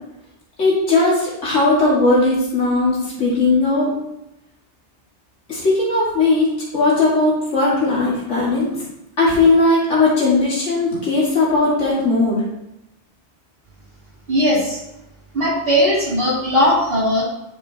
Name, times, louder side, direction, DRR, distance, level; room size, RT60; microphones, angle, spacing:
voice 1, 0.6-3.9 5.5-8.8 9.2-12.4, left 3 dB, 85° left, -6 dB, 2.4 m, -17 dB
voice 2, 14.3-14.8 15.3-17.2, equal, 55° right, -7 dB, 3.4 m, -18 dB
9.9 x 6.5 x 2.8 m, 0.89 s
omnidirectional pair, 1.2 m